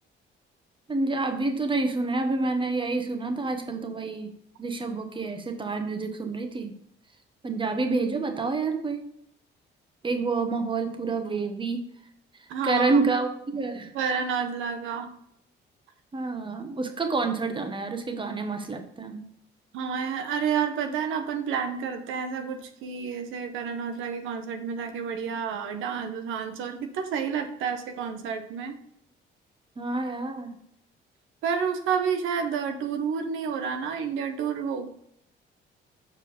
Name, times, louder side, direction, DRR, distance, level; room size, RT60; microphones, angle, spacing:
voice 1, 0.9-4.3 4.6-6.7 7.4-9.1 10.0-11.9 12.6-13.9 16.1-19.2 29.8-30.6, right 3 dB, 25° right, 6 dB, 1.2 m, -28 dB
voice 2, 12.5-13.0 13.9-15.1 19.7-28.8 31.4-34.9, right 6 dB, 90° right, 6 dB, 0.9 m, -30 dB
7.1 x 4.7 x 5.0 m, 0.71 s
cardioid pair, 90°, 20 cm